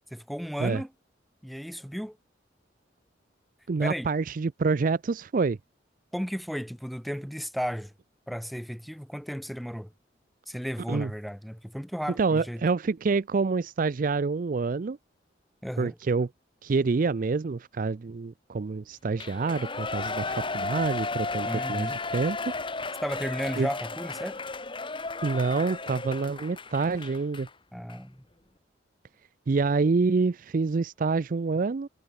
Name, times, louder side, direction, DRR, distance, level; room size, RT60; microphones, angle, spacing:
voice 1, 0.1-0.9 1.4-2.2 3.8-4.1 6.1-7.9 8.3-9.9 10.5-12.6 15.6-16.0 21.5-22.0 23.0-24.4 27.7-28.2, equal, ahead, 1.8 m, -34 dB
voice 2, 3.7-5.6 10.9-11.1 12.2-15.0 15.8-16.3 16.6-22.4 23.6-23.7 25.2-27.5 29.5-31.9, right 4 dB, 45° right, 0.4 m, -27 dB
Shout / Cheering, 19.2-27.5 27.9-28.0, left 3 dB, 25° left, 2.1 m, -34 dB
head